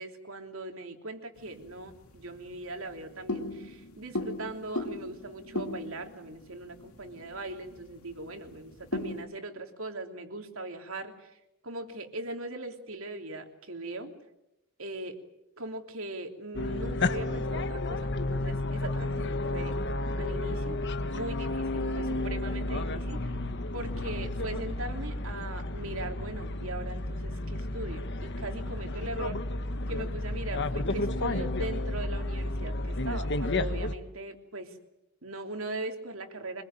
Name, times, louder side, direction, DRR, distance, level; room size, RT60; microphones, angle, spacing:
voice 1, 0.0-11.4 11.6-14.1 14.8-15.2 15.6-19.7 20.2-23.3 23.7-29.4 29.9-34.8 35.2-36.6, right 2 dB, 65° right, 5 dB, 3.2 m, -40 dB
sound 1, 1.4-9.3, left 1 dB, 75° left, 2.5 m, -39 dB
sound 2, 16.5-34.0, left 2 dB, 55° left, 1.3 m, -32 dB
25.0 x 22.0 x 9.0 m, 0.88 s
head